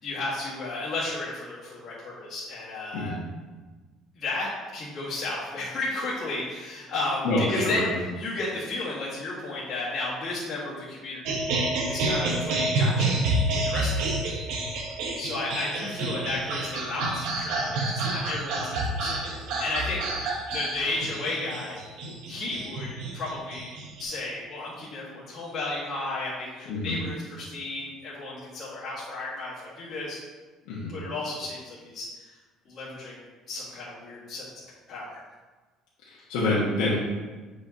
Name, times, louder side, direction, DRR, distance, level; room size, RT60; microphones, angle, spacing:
voice 1, 0.0-3.2 4.2-7.8 8.2-11.5 11.8-13.3 13.5-14.5 15.2-21.8 22.3-22.9 23.1-23.7 24.0-30.2 30.9-32.3 32.7-34.5 34.9-35.2, left 2 dB, 40° left, -10 dB, 1.9 m, -33 dB
voice 2, 7.2-8.0 26.7-27.0 30.6-30.9 36.0-37.0, left 2 dB, 90° left, -7 dB, 1.6 m, -27 dB
sound 1, 11.3-24.0, right 2 dB, 80° right, 1.3 m, -28 dB
8.3 x 4.8 x 2.9 m, 1.3 s
cardioid pair, 165°, 0 cm